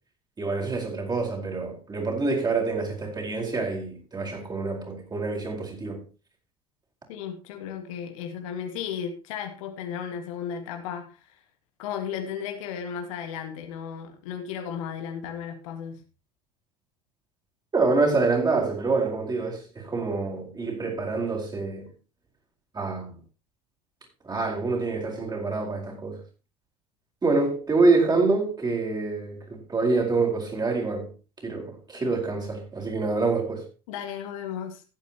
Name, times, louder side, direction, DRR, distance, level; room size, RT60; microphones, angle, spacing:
voice 1, 0.4-6.0 17.7-21.9 22.7-23.1 24.2-26.2 27.2-31.1 31.4-33.6, right 3 dB, 20° right, 4.7 m, -26 dB
voice 2, 7.1-11.4 11.8-16.0 33.9-34.8, left 8 dB, 65° left, 1.9 m, -35 dB
16.0 x 9.1 x 3.0 m
figure-of-eight pair, 70°, 19 cm